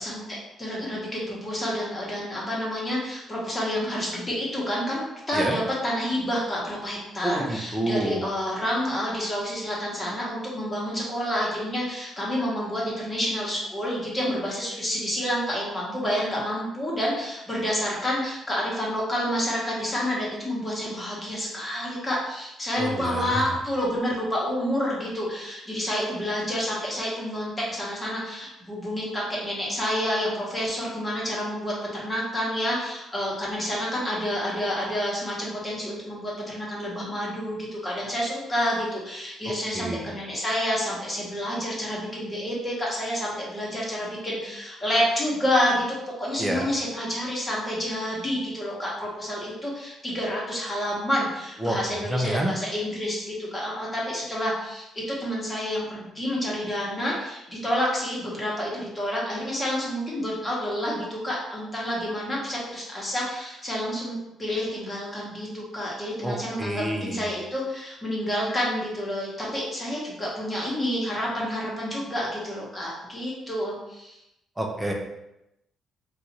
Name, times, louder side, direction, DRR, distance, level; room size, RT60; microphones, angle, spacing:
voice 1, 0.0-74.2, equal, 20° left, -4 dB, 1.1 m, -29 dB
voice 2, 7.2-8.2 22.8-23.5 39.7-40.1 46.4-46.7 51.6-51.8 52.1-52.5 66.2-67.2 74.6-74.9, right 1 dB, 10° right, 1 dB, 0.5 m, -28 dB
2.7 x 2.4 x 4.1 m, 0.88 s
cardioid pair, 120°, 0 cm